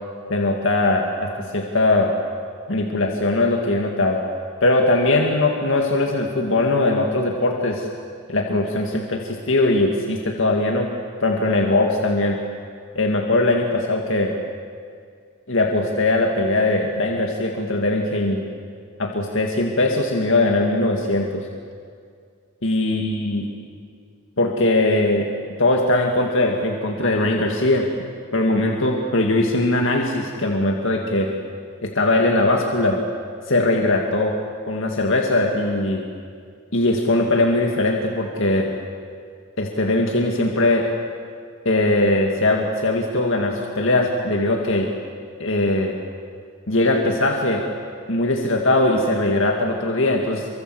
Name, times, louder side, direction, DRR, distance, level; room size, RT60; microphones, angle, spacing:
voice 1, 0.3-2.1 2.7-4.2 4.6-7.9 8.3-10.9 11.2-12.4 13.0-14.3 15.5-18.4 19.0-21.5 22.6-23.5 24.4-25.3 25.6-27.9 28.3-31.3 31.8-33.0 33.5-34.3 34.7-36.0 36.7-38.7 39.6-40.9 41.7-44.9 45.4-45.9 46.7-47.6 48.1-50.5, left 2 dB, 60° left, 1 dB, 2.2 m, -20 dB
28.0 x 24.5 x 8.0 m, 2.2 s
head